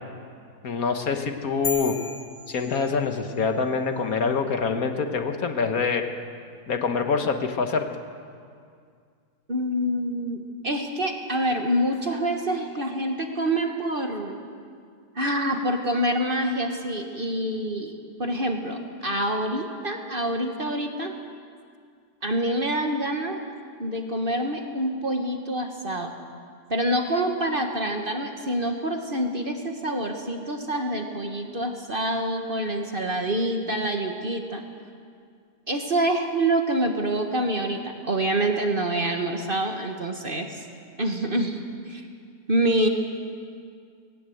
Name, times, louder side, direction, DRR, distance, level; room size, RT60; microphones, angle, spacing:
voice 1, 0.6-1.9 2.5-6.0 6.7-7.8, left 5 dB, 60° left, 6 dB, 1.6 m, -25 dB
sound 1, 1.6-3.4, left 4 dB, 35° left, 2.1 m, -35 dB
voice 2, 9.5-14.4 15.1-17.9 18.2-21.2 22.2-23.4 23.8-26.1 26.7-34.6 35.7-40.7 41.0-41.6 41.9-42.1 42.5-42.9, right 1 dB, 35° right, 4 dB, 1.5 m, -26 dB
19.5 x 18.5 x 7.9 m, 2.2 s
omnidirectional pair, 1.8 m